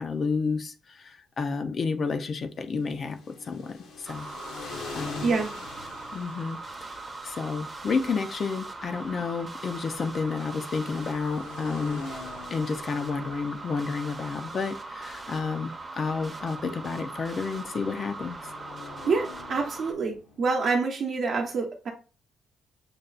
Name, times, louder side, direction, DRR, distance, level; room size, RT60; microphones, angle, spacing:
voice 1, 0.0-4.3 4.6-5.3 6.1-6.6 7.2-12.0 12.5-18.4, left 5 dB, 40° left, 0.4 m, -31 dB
sound 1, 2.7-20.6, left 4 dB, 80° left, 0.9 m, -45 dB
sound 2, 4.1-19.9, right 3 dB, 20° right, 0.7 m, -40 dB
voice 2, 5.2-5.5 19.0-21.9, right 4 dB, 55° right, 0.7 m, -27 dB
6.5 x 2.2 x 2.4 m
cardioid pair, 135°, 0 cm